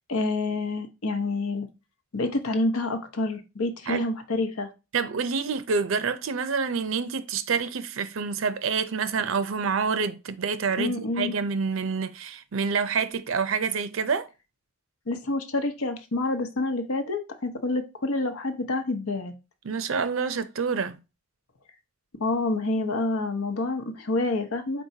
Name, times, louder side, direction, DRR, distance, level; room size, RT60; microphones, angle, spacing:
voice 1, 0.1-1.7 2.1-4.7 10.8-11.3 15.1-19.3 22.2-24.8, left 2 dB, 90° left, 0.9 m, -28 dB
voice 2, 4.9-14.3 19.6-21.0, right 5 dB, 70° right, 0.5 m, -27 dB
4.5 x 4.2 x 2.7 m
head